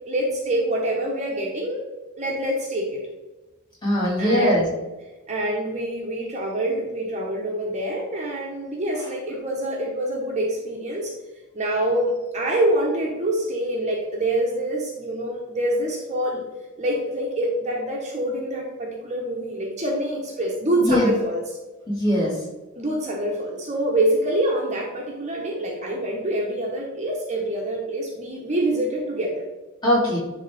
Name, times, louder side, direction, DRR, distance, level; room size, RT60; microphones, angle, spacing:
voice 1, 0.1-1.9 2.2-3.0 4.2-4.7 5.3-11.1 11.5-16.4 16.8-21.6 22.7-29.5, right 1 dB, 30° right, -1 dB, 1.0 m, -26 dB
voice 2, 3.8-4.7 20.8-21.1 21.9-22.3 29.8-30.2, equal, 20° left, -5 dB, 2.4 m, -20 dB
10.5 x 3.7 x 3.5 m, 1.2 s
head